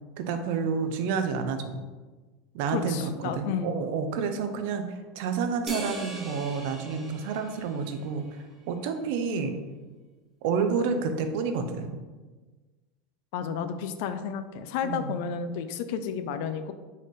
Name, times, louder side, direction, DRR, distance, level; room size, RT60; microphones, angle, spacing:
voice 1, 0.2-1.8 2.5-9.5 10.4-12.0 14.8-15.2, right 5 dB, 70° right, 7 dB, 0.5 m, -29 dB
voice 2, 2.7-3.8 13.3-16.7, left 7 dB, 65° left, 10 dB, 0.4 m, -32 dB
sound 1, 5.7-8.4, right 1 dB, 20° right, 1.0 m, -40 dB
4.0 x 4.0 x 3.1 m, 1.3 s
supercardioid pair, 135°, 0 cm